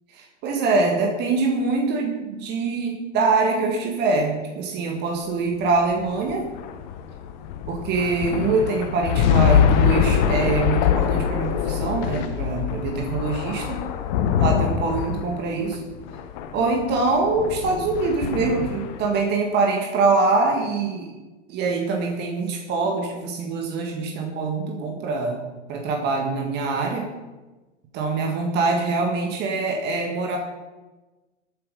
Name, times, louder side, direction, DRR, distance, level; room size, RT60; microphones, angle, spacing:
voice 1, 0.2-6.5 7.7-13.8 14.4-15.8 16.5-21.1 21.5-25.4 25.7-27.1 27.9-30.4, right 3 dB, 25° right, 1 dB, 2.0 m, -24 dB
sound 1, 5.6-19.2, left 9 dB, 35° left, 1.1 m, -24 dB
14.5 x 8.6 x 5.3 m, 1.2 s
figure-of-eight pair, 105°, 37 cm